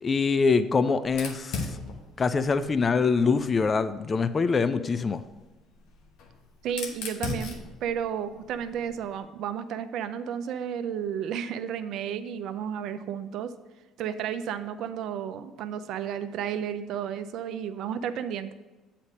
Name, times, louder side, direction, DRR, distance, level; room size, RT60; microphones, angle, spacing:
voice 1, 0.0-1.8 2.2-5.2, left 4 dB, 35° left, 12 dB, 0.5 m, -24 dB
Fire, 1.0-3.8 5.0-9.2, left 4 dB, 75° left, 1.1 m, -39 dB
voice 2, 6.6-13.5 14.0-18.5, right 8 dB, 65° right, 10 dB, 0.5 m, -32 dB
8.0 x 4.2 x 6.3 m, 1.2 s
hypercardioid pair, 65°, 0 cm